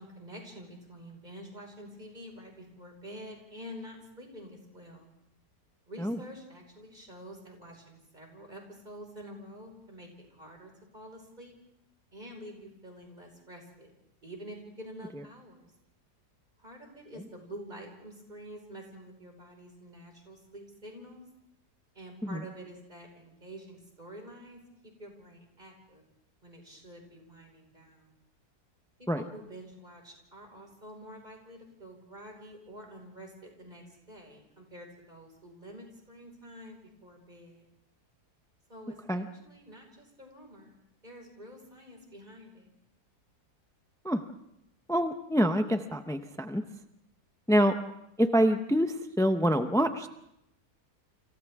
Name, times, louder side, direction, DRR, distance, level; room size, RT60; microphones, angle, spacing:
voice 1, 0.0-5.1 5.9-11.5 12.1-13.9 14.2-15.7 16.6-21.2 21.9-24.6 25.0-26.0 26.4-28.2 29.0-37.6 38.7-40.8 41.0-42.7, equal, 25° right, 1 dB, 5.3 m, -48 dB
voice 2, 44.9-46.6 47.5-47.7 48.2-50.1, equal, 5° left, 7 dB, 0.3 m, -26 dB
29.5 x 26.5 x 3.6 m, 0.82 s
omnidirectional pair, 1.7 m